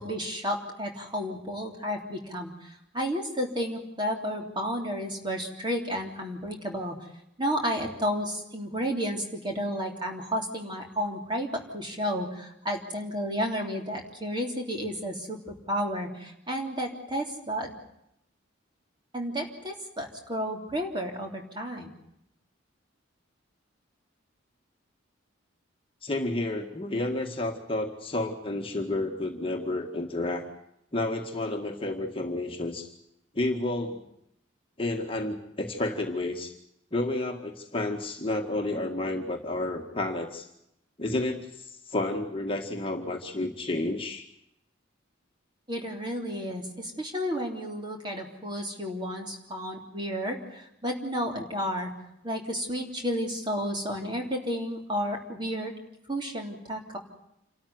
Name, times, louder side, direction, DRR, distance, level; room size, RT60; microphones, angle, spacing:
voice 1, 0.0-6.9 7.4-17.7 19.1-21.9 45.7-51.9 52.2-55.7 56.1-57.0, equal, 20° right, 2 dB, 3.4 m, -32 dB
voice 2, 26.0-30.5 30.9-32.9 33.3-34.0 34.8-36.5 36.9-40.5 41.0-44.2, left 2 dB, 25° left, 2 dB, 1.9 m, -31 dB
28.0 x 13.0 x 9.6 m, 0.81 s
head